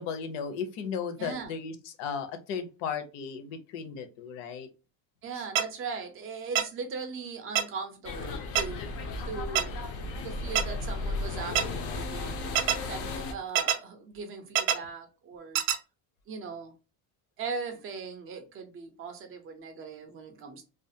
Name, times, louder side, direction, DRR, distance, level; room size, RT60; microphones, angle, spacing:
voice 1, 0.0-4.7 5.4-5.5, left 6 dB, 70° left, 0.7 m, -35 dB
voice 2, 1.2-1.5 5.2-8.8 9.3-9.7 10.2-12.5 12.8-15.6 16.3-16.7 17.4-20.6, right 5 dB, 30° right, 0.4 m, -39 dB
sound 1, 5.6-5.7 6.6-6.7 7.6-7.7 8.6-8.7 9.6-9.7 10.6-10.7 11.6-11.7 12.6-12.8 13.6-13.8 14.6-14.8 15.6-15.8, right 10 dB, 80° right, 0.5 m, -24 dB
sound 2, 8.0-13.3, left 3 dB, 35° left, 0.4 m, -35 dB
2.4 x 2.3 x 2.6 m
cardioid pair, 160°, 44 cm